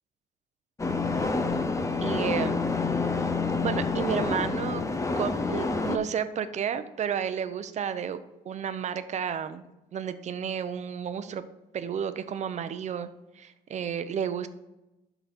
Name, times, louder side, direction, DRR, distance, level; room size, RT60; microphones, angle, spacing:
sound 1, 0.8-6.0, left 3 dB, 20° left, 0.6 m, -28 dB
voice 1, 2.0-2.6 3.6-4.8 5.2-8.2 8.4-9.7 9.9-11.4 11.7-13.1 13.4-14.5, right 8 dB, 45° right, 11 dB, 0.7 m, -31 dB
11.5 x 4.0 x 4.3 m, 0.96 s
cardioid pair, 110°, 17 cm